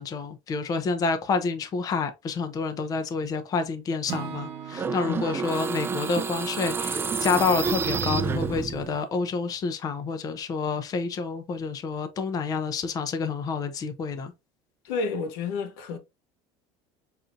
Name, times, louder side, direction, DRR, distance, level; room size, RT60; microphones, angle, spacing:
voice 1, 0.0-14.3, left 4 dB, 30° left, 0.6 m, -28 dB
Acoustic guitar / Strum, 4.1-8.1, right 9 dB, 45° right, 0.9 m, -42 dB
sound 1, 4.7-9.0, right 5 dB, 20° right, 0.4 m, -29 dB
voice 2, 5.0-5.4 14.8-16.0, left 5 dB, 85° left, 1.0 m, -30 dB
5.7 x 2.6 x 2.5 m
cardioid pair, 130°, 12 cm